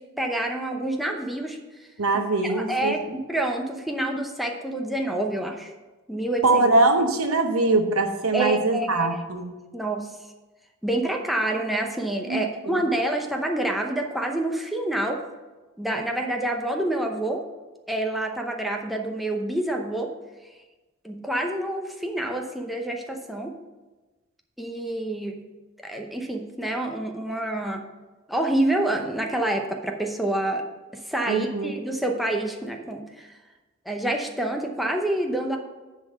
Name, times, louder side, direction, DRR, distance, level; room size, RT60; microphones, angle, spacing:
voice 1, 0.0-1.6 2.4-5.7 6.1-6.6 8.3-9.2 9.7-10.1 10.8-15.2 15.8-17.4 17.9-20.1 21.0-23.5 24.6-25.4 25.8-27.8 28.3-30.6 31.1-33.3 33.9-35.6, right 1 dB, ahead, 1 dB, 0.7 m, -27 dB
voice 2, 2.0-2.9 6.4-9.5 12.3-12.8 31.3-31.7, right 2 dB, 85° right, 6 dB, 0.9 m, -22 dB
10.0 x 4.0 x 6.4 m, 1.2 s
head